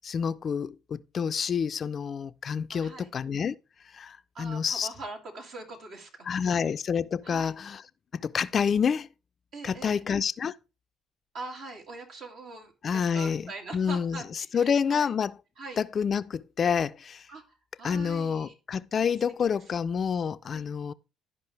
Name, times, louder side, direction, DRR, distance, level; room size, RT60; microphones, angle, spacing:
voice 1, 0.0-3.6 3.9-4.9 6.3-7.8 8.1-9.1 9.6-10.5 12.8-14.2 14.5-15.3 15.8-17.2 17.8-20.9, left 7 dB, 50° left, 0.4 m, -28 dB
voice 2, 2.7-3.1 4.3-6.7 7.2-7.5 9.5-10.0 11.3-14.3 14.5-15.1 15.6-15.8 17.3-18.5 20.4-20.7, right 3 dB, 65° right, 2.6 m, -42 dB
12.5 x 5.1 x 3.3 m
hypercardioid pair, 60°, 0 cm